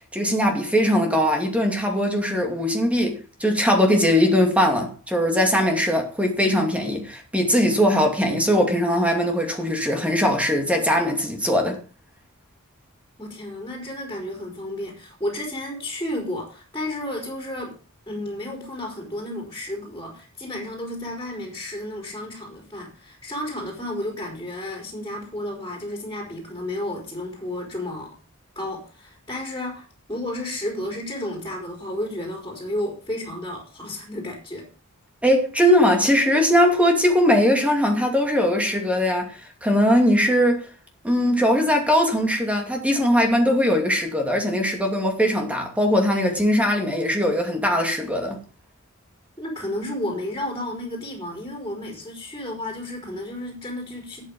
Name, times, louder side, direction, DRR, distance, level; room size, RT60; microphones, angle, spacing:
voice 1, 0.1-11.8 35.2-40.7 41.0-48.4, equal, 5° right, 2.5 m, -20 dB
voice 2, 13.2-17.8 18.1-28.1 28.5-34.7 49.4-54.3, left 1 dB, 15° left, 4.4 m, -32 dB
12.5 x 9.0 x 5.5 m
head